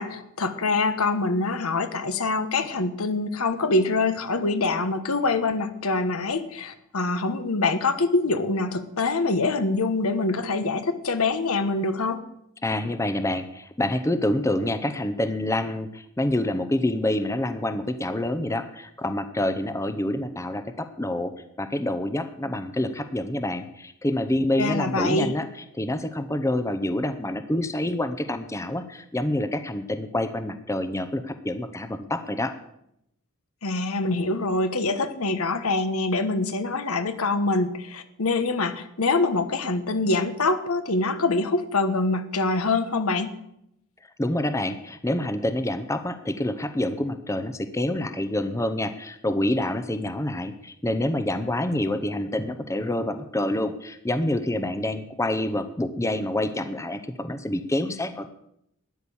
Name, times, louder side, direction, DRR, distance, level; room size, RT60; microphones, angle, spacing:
voice 1, 0.0-12.2 24.6-25.3 33.6-43.4, left 3 dB, 80° left, 11 dB, 1.2 m, -25 dB
voice 2, 12.6-21.3 21.6-25.5 25.8-32.5 44.2-58.3, left 1 dB, 15° left, 10 dB, 0.7 m, -27 dB
12.5 x 10.0 x 7.1 m, 0.79 s
head